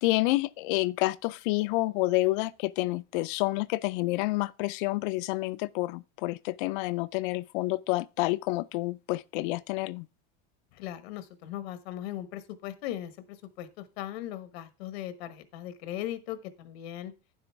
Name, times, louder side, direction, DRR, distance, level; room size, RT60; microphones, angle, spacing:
voice 1, 0.0-10.1, left 20 dB, 55° left, 0.4 m, -29 dB
voice 2, 10.7-17.1, left 12 dB, 85° left, 1.3 m, -38 dB
9.8 x 7.8 x 3.5 m
supercardioid pair, 165°, 30 cm